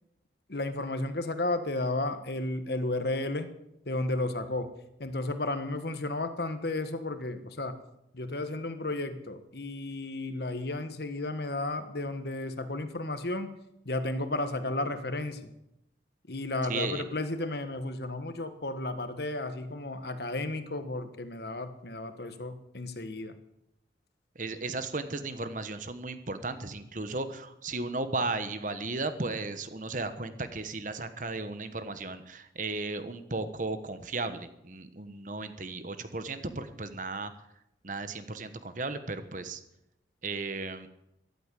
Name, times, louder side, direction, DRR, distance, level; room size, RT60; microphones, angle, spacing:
voice 1, 0.5-3.5 3.8-4.7 5.0-7.8 8.1-13.5 13.8-15.5 16.3-23.3, left 2 dB, 60° left, 9 dB, 1.4 m, -33 dB
voice 2, 16.7-17.0 24.3-37.3 37.8-39.6 40.2-40.9, right 3 dB, 45° right, 10 dB, 1.2 m, -35 dB
14.0 x 12.0 x 8.4 m, 0.85 s
head